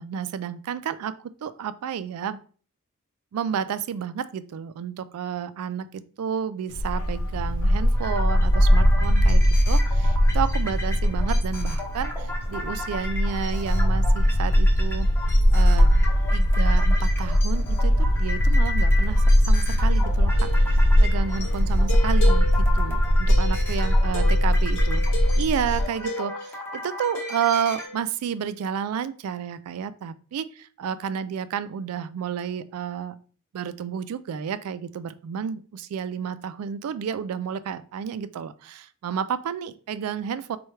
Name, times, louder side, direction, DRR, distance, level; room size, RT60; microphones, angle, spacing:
voice 1, 0.0-2.4 3.3-9.8 10.3-15.1 15.5-15.9 16.3-33.2 33.5-40.6, right 7 dB, 80° right, 14 dB, 0.3 m, -31 dB
Bark, 6.7-25.8, equal, 75° left, 0.6 m, -20 dB
sound 1, 7.9-27.9, left 2 dB, 10° left, 0.6 m, -37 dB
sound 2, 20.3-26.6 27.1-28.0, left 2 dB, 60° left, 1.0 m, -36 dB
4.3 x 2.3 x 3.1 m, 0.41 s
head